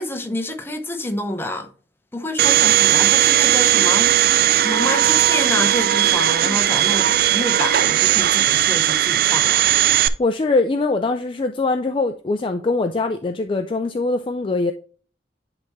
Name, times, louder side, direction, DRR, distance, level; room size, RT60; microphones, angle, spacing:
voice 1, 0.0-1.7 2.1-4.2 4.6-9.7, left 1 dB, 15° left, 0.8 m, -28 dB
Domestic sounds home sounds, 2.4-10.1, right 12 dB, 55° right, 0.4 m, -17 dB
voice 2, 10.0-14.7, left 3 dB, 30° left, 0.4 m, -22 dB
10.5 x 3.6 x 3.1 m
head